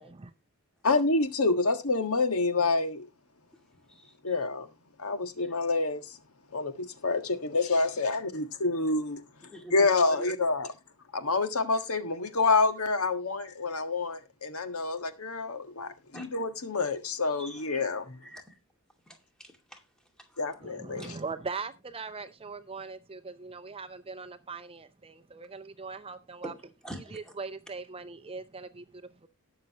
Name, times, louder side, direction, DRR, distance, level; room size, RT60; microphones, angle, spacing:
voice 1, 0.8-3.1 4.2-4.7 5.0-6.2 6.5-9.2 9.7-10.7 11.1-18.2 20.4-21.2, left 3 dB, 80° left, 1.6 m, -28 dB
voice 2, 9.5-9.9 10.2-10.3 16.1-16.3 17.4-17.8 18.2-18.6 19.1-19.8 20.3-20.4 21.0-21.1 26.4-26.6 26.8-27.3, right 1 dB, 5° left, 2.3 m, -44 dB
voice 3, 20.6-26.5 27.1-29.3, right 4 dB, 25° right, 0.6 m, -40 dB
19.0 x 6.7 x 2.9 m
head